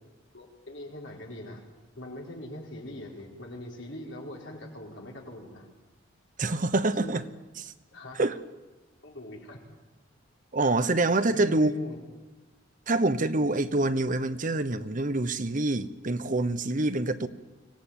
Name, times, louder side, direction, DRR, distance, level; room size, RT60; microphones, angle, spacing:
voice 1, 0.3-1.6 2.0-5.7 7.0-7.2 7.9-8.2 9.0-9.6 11.3-12.0, left 1 dB, 65° left, 0 dB, 4.8 m, -42 dB
voice 2, 6.4-7.2 7.6-7.7 8.2-8.4 10.5-11.7 12.9-17.3, right 2 dB, 40° right, 12 dB, 1.0 m, -26 dB
24.0 x 17.5 x 9.0 m, 1.2 s
head